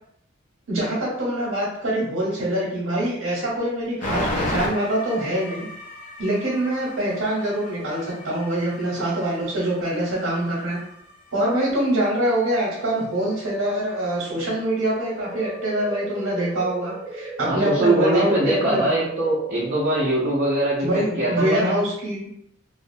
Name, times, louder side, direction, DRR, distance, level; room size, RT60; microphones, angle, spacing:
voice 1, 0.7-5.6 6.2-10.8 11.3-18.9 20.8-22.3, right 1 dB, 80° right, -5 dB, 0.8 m, -24 dB
sound 1, 4.0-17.5, left 1 dB, 40° left, 0.4 m, -36 dB
sound 2, 15.0-20.0, right 3 dB, 5° right, 0.8 m, -36 dB
voice 2, 17.5-21.8, right 2 dB, 45° right, -6 dB, 0.5 m, -22 dB
2.3 x 2.0 x 2.6 m, 0.71 s
head